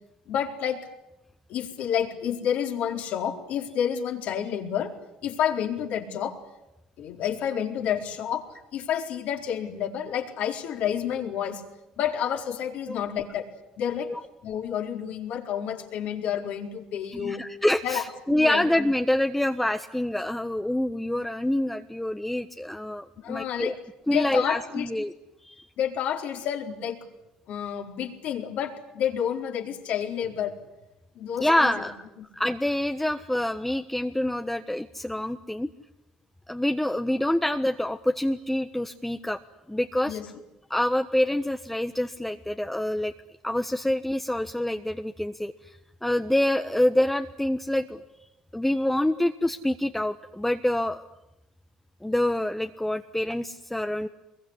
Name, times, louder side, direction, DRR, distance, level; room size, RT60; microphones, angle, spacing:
voice 1, 0.3-0.8 1.5-4.9 5.2-6.4 7.0-8.4 8.7-11.6 12.0-13.5 13.8-14.1 14.4-17.4 17.8-18.0 18.3-18.7 23.2-23.8 24.1-24.9 25.8-27.0 27.5-30.6 31.2-31.9 32.2-32.3 40.1-40.3, left 9 dB, 70° left, 2 dB, 4.4 m, -29 dB
voice 2, 17.1-23.7 24.1-25.1 25.4-25.6 31.4-32.0 32.3-35.7 36.5-39.4 39.7-40.2 40.7-43.1 43.4-45.8 46.0-48.0 48.5-51.1 52.0-54.1, left 1 dB, 5° left, 7 dB, 1.4 m, -26 dB
24.5 x 22.0 x 10.0 m, 0.95 s
supercardioid pair, 65°, 3 cm